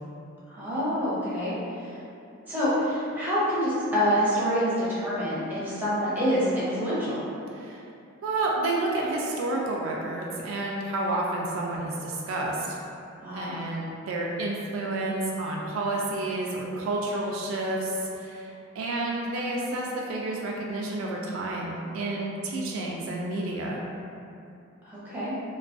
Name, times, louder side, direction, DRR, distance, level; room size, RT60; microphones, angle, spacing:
voice 1, 0.5-2.0 2.4-7.2 13.2-13.6 24.9-25.3, equal, 10° right, -11 dB, 0.7 m, -27 dB
voice 2, 7.5-7.8 8.2-12.8 13.3-23.9, right 2 dB, 75° right, -2 dB, 0.3 m, -30 dB
2.3 x 2.2 x 2.4 m, 2.6 s
head